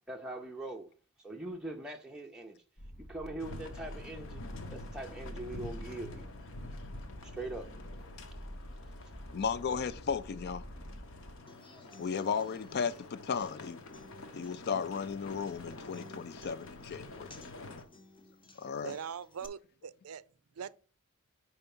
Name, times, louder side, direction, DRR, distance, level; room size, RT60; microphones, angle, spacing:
voice 1, 0.1-0.9 1.2-2.6 3.0-4.4 4.7-6.3 7.2-7.7, right 2 dB, 5° right, 0.5 m, -42 dB
sound 1, 2.8-11.4, equal, 85° left, 2.2 m, -47 dB
sound 2, 3.4-17.8, left 2 dB, 65° left, 1.0 m, -48 dB
voice 2, 9.3-10.7 12.0-13.8 14.3-17.3 18.6-18.9, left 6 dB, 50° left, 0.4 m, -35 dB
Human voice / Acoustic guitar, 11.5-19.5, left 2 dB, 25° left, 0.8 m, -57 dB
voice 3, 18.8-20.2 20.6-20.7, right 7 dB, 90° right, 0.5 m, -42 dB
5.6 x 4.4 x 5.3 m
head